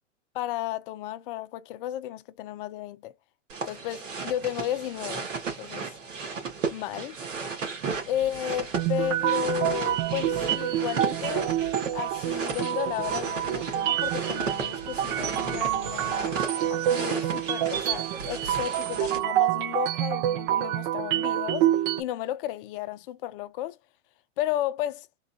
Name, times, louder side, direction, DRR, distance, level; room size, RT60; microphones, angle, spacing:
voice 1, 0.3-3.1 3.7-5.3 5.6-5.9 6.7-7.2 8.0-11.5 11.9-16.4 16.7-21.7 22.0-23.8 24.4-25.1, left 12 dB, 45° left, 0.6 m, -33 dB
sound 1, 3.5-19.2, right 5 dB, 80° right, 1.8 m, -35 dB
sound 2, 8.7-22.0, right 12 dB, 35° right, 0.5 m, -27 dB
3.9 x 2.4 x 2.7 m
hypercardioid pair, 125°, 37 cm